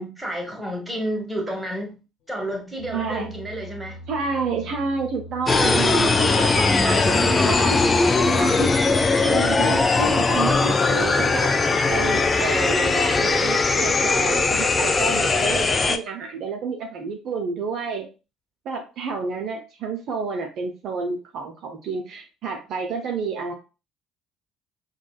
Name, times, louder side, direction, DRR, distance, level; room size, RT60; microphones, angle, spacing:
voice 1, 0.2-2.0 2.3-4.0, right 1 dB, 10° right, 0 dB, 1.5 m, -30 dB
sound 1, 2.3-11.1, equal, 60° left, 0.8 m, -42 dB
voice 2, 2.9-3.3 4.1-7.8 8.2-8.7 9.2-11.6 11.9-18.1 18.6-23.5, right 5 dB, 50° right, 3 dB, 0.6 m, -29 dB
sound 2, 5.5-16.0, left 3 dB, 25° left, 0.4 m, -20 dB
6.0 x 2.3 x 2.3 m, 0.31 s
figure-of-eight pair, 55°, 0 cm